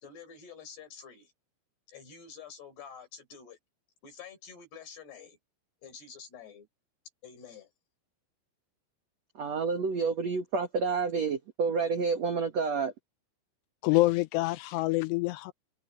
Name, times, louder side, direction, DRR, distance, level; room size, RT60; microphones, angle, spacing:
voice 1, 0.0-1.3 1.9-3.6 4.0-5.4 5.8-6.7 7.2-7.7, left 6 dB, 55° left, 7.1 m, -48 dB
voice 2, 9.4-12.9, right 5 dB, 70° right, 1.6 m, -29 dB
voice 3, 13.8-15.5, left 20 dB, 85° left, 2.4 m, -26 dB
omnidirectional pair, 5.6 m